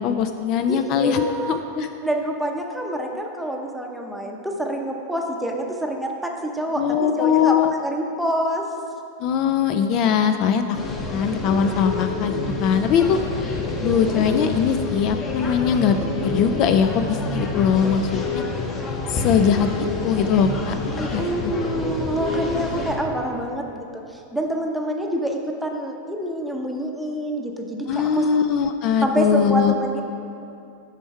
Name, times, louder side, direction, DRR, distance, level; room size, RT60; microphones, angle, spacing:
voice 1, 0.0-1.9 6.8-7.7 9.2-10.6 11.1-12.3 12.6-13.2 13.8-18.4 19.1-19.7 20.0-20.7 21.0-21.5 27.9-29.7, left 7 dB, 45° left, 7 dB, 0.4 m, -21 dB
voice 2, 0.7-1.6 2.0-8.7 14.1-14.3 20.9-28.2 29.0-30.0, right 1 dB, ahead, 1 dB, 0.7 m, -27 dB
sound 1, 10.7-22.9, left 3 dB, 30° left, 1.0 m, -27 dB
8.1 x 4.5 x 5.5 m, 2.6 s
supercardioid pair, 130°, 0 cm